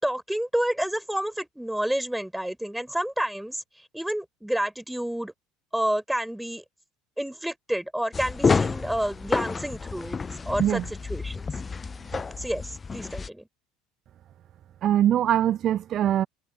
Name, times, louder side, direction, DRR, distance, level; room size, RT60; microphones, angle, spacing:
voice 1, 0.0-3.6 3.9-5.3 5.7-6.6 7.2-10.2 10.5-11.5 12.4-13.5, right 1 dB, 5° right, 5.1 m, -29 dB
sound 1, 8.1-13.3, left 5 dB, 25° left, 0.8 m, -29 dB
voice 2, 14.8-16.3, right 11 dB, 45° right, 0.5 m, -22 dB
figure-of-eight pair, 65°, 0 cm